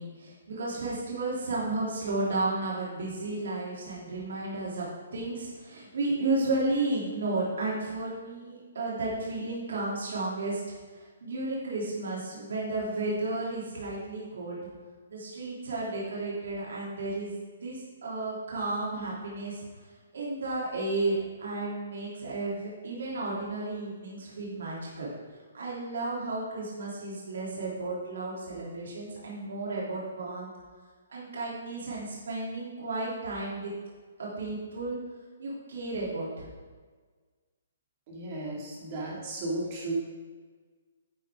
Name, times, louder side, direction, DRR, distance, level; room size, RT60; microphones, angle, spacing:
voice 1, 0.0-4.9 5.1-10.6 10.9-14.6 15.1-19.6 20.1-25.1 25.5-30.5 31.1-33.7 34.2-35.0 35.4-36.4, right 2 dB, 65° right, -6 dB, 3.3 m, -33 dB
voice 2, 38.1-39.9, right 2 dB, 25° right, -3 dB, 2.4 m, -35 dB
11.0 x 8.6 x 3.8 m, 1.5 s
hypercardioid pair, 180°, 0 cm